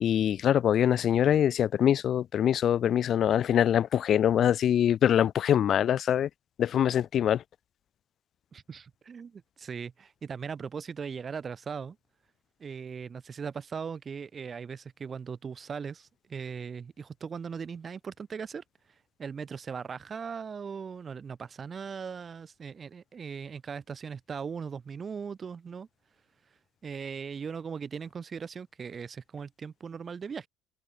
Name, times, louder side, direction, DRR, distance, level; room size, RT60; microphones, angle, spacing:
voice 1, 0.0-6.3 6.6-7.4, left 10 dB, 50° left, 0.4 m, -24 dB
voice 2, 8.5-12.0 12.6-18.6 19.2-25.9 26.8-30.5, right 6 dB, 35° right, 6.1 m, -39 dB
supercardioid pair, 85°, 0 cm